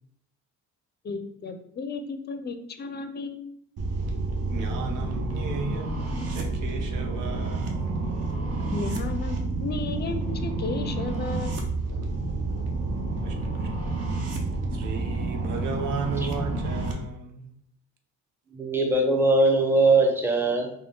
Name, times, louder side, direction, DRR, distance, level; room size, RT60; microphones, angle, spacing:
voice 1, 1.0-3.6 8.6-11.7, left 3 dB, 35° left, 9 dB, 0.4 m, -34 dB
sound 1, 3.8-16.9, right 3 dB, 55° right, 0.7 m, -29 dB
voice 2, 4.4-8.0 13.2-13.9 14.7-17.6, right 4 dB, 90° right, 3 dB, 0.6 m, -35 dB
voice 3, 18.5-20.7, right 2 dB, 10° right, 2 dB, 0.6 m, -21 dB
3.6 x 2.2 x 3.6 m, 0.68 s
cardioid pair, 90°, 30 cm